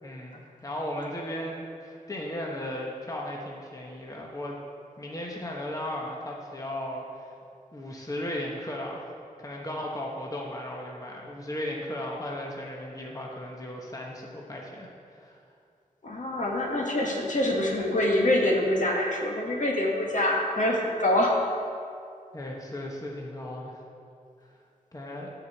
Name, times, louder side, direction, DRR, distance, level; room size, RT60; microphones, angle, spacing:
voice 1, 0.0-4.6 5.0-7.3 7.7-9.1 9.4-15.4 22.3-23.8 24.4-24.5 24.9-25.3, left 1 dB, 25° left, -2 dB, 1.1 m, -36 dB
voice 2, 16.0-21.4, left 1 dB, 65° left, -1 dB, 1.6 m, -25 dB
9.3 x 4.9 x 7.3 m, 2.4 s
wide cardioid pair, 80°, 14 cm